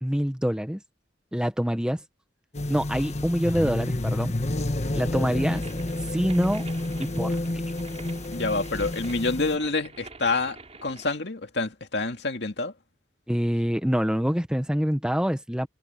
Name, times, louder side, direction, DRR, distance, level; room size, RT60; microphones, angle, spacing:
voice 1, 0.0-0.8 1.3-2.0 2.7-4.3 4.9-5.6 6.1-6.7 7.0-7.4 13.3-15.7, equal, 5° right, 1.1 m, -25 dB
sound 1, 2.5-9.6, left 1 dB, 40° left, 1.5 m, -30 dB
sound 2, 5.5-11.1, right 3 dB, 35° right, 3.6 m, -46 dB
voice 2, 8.3-12.7, left 3 dB, 65° left, 2.4 m, -27 dB
head